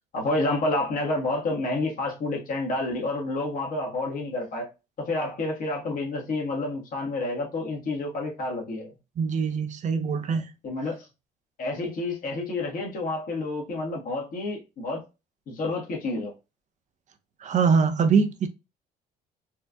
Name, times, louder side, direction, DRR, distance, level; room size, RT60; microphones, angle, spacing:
voice 1, 0.1-4.7 5.0-8.9 10.6-11.1 11.6-15.0 15.5-16.3, left 2 dB, 55° left, 1.5 m, -29 dB
voice 2, 9.2-10.5 17.4-18.5, right 5 dB, 45° right, 0.6 m, -23 dB
4.4 x 2.6 x 2.3 m
cardioid pair, 110°, 17 cm